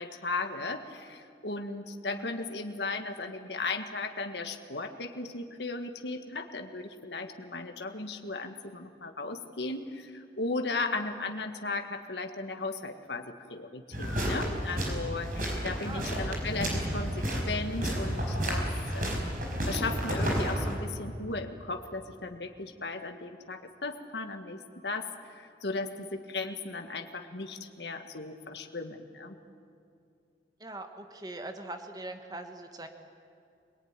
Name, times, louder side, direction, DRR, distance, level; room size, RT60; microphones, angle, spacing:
voice 1, 0.0-18.7 18.9-19.3 19.7-29.4, left 3 dB, 80° left, 5 dB, 1.6 m, -36 dB
sound 1, 13.9-20.7, equal, 50° right, 5.1 m, -31 dB
voice 2, 15.8-16.4 30.6-32.9, right 2 dB, 20° right, 6 dB, 1.5 m, -42 dB
25.5 x 18.5 x 9.7 m, 2.5 s
head